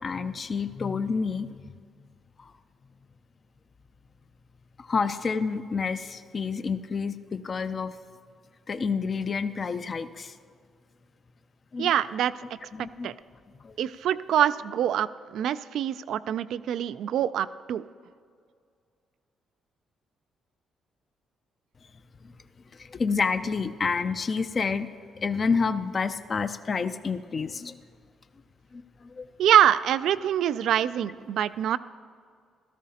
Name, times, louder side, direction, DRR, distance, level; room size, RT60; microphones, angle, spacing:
voice 1, 0.0-1.7 2.4-2.5 4.8-7.9 8.7-10.3 11.7-11.9 12.7-13.1 13.6-13.8 22.8-24.9 25.2-27.8 28.7-29.3, left 5 dB, 40° left, 11 dB, 0.5 m, -29 dB
voice 2, 11.8-12.3 13.0-13.1 13.8-15.1 15.3-17.8 29.4-31.8, right 10 dB, 75° right, 16 dB, 0.3 m, -24 dB
16.0 x 13.0 x 2.8 m, 2.2 s
cardioid pair, 90°, 0 cm